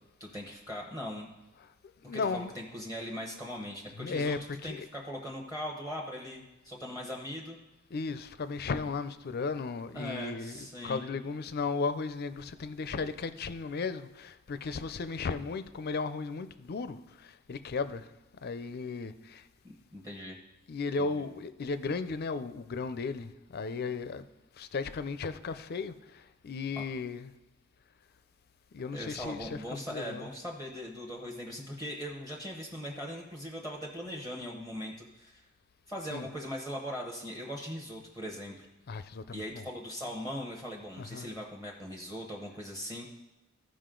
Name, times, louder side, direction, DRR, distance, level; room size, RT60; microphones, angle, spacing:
voice 1, 0.2-1.3 2.1-4.4 4.6-7.6 9.9-11.1 19.6-20.4 21.0-21.2 26.7-26.8 28.9-35.4 35.9-38.7 39.3-43.1, equal, 15° right, 1.0 m, -40 dB
voice 2, 2.0-2.5 3.9-4.9 7.9-18.1 18.4-19.4 20.7-24.2 24.6-27.3 28.7-30.3 36.1-36.3 38.9-39.6 41.0-41.3, left 4 dB, 50° left, 0.4 m, -35 dB
14.5 x 5.0 x 3.8 m
head